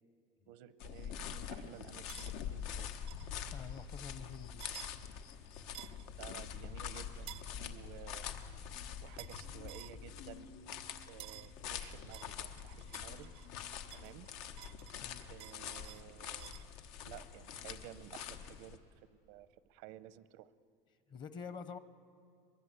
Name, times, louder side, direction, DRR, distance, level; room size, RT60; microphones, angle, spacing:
voice 1, 0.5-2.9 6.2-8.3 9.0-10.5 11.1-13.3 13.9-14.3 15.3-16.6 17.0-18.8 19.1-20.5, right 13 dB, 85° right, 16 dB, 0.8 m, -53 dB
sound 1, 0.8-18.8, left 8 dB, 85° left, 1.3 m, -45 dB
sound 2, 2.1-2.3 3.1-3.3 4.6-4.9 5.7-6.1 7.3-7.5 9.2-9.4 9.7-10.0 11.2-11.5 12.1-13.5 13.9-16.7, right 16 dB, 45° right, 0.5 m, -52 dB
voice 2, 3.5-4.6 15.0-15.2 21.1-21.8, left 6 dB, 30° left, 13 dB, 0.9 m, -47 dB
sound 3, 8.7-14.5, left 6 dB, 60° left, 5.5 m, -61 dB
22.5 x 22.5 x 8.3 m, 2.3 s
cardioid pair, 165°, 14 cm